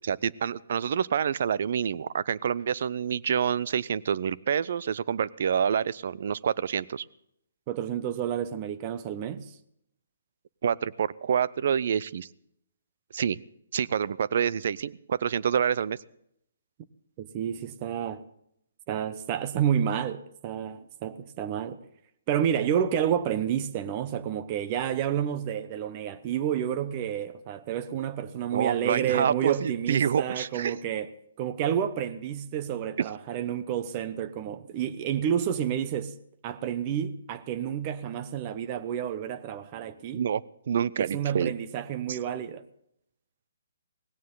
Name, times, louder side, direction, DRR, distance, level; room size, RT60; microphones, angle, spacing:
voice 1, 0.1-7.0 10.6-12.3 13.1-13.4 13.7-16.0 28.5-30.7 33.0-33.1 40.1-40.4 40.7-41.5 42.1-42.2, right 8 dB, 60° right, 0.5 m, -27 dB
voice 2, 7.7-9.5 17.2-18.2 18.9-21.8 22.3-31.1 31.4-36.1 36.4-40.2 41.0-42.6, right 9 dB, 35° right, 0.9 m, -30 dB
18.0 x 17.0 x 3.9 m
hypercardioid pair, 140°, 0 cm